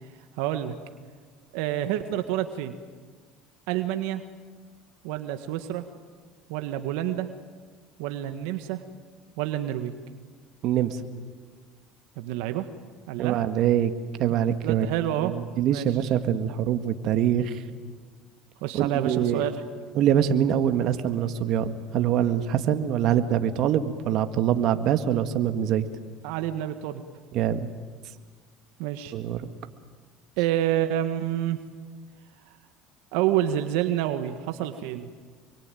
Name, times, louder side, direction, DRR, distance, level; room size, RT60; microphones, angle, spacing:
voice 1, 0.4-0.7 1.5-2.7 3.7-4.2 5.0-5.8 6.5-7.3 8.0-8.8 9.4-9.9 12.2-12.7 13.1-13.4 14.3-15.3 15.7-15.9 18.6-19.6 26.2-27.0 28.8-29.2 30.4-31.6 33.1-35.1, right 12 dB, 80° right, 8 dB, 1.6 m, -28 dB
voice 2, 10.6-11.0 13.2-13.9 14.2-14.9 15.2-17.6 18.7-19.5 19.9-25.9 27.3-27.7 29.1-29.5, right 10 dB, 60° right, 8 dB, 1.8 m, -24 dB
26.5 x 23.5 x 9.3 m, 1.6 s
supercardioid pair, 95°, 0 cm